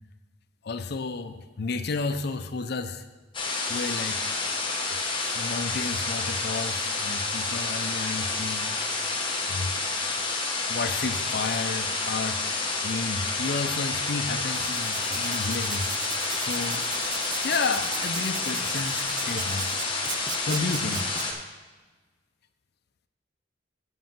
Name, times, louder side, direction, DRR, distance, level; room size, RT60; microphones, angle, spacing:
voice 1, 0.6-3.0 3.7-4.2 4.9-8.8 9.5-9.7 10.7-12.4 12.8-15.9 16.4-16.8 17.4-19.8 20.5-21.1, left 4 dB, 55° left, 10 dB, 0.5 m, -32 dB
sound 1, 3.3-21.3, left 3 dB, 25° left, 1.3 m, -29 dB
Writing, 14.4-21.3, right 6 dB, 20° right, 0.4 m, -38 dB
7.9 x 5.5 x 7.5 m, 1.3 s
head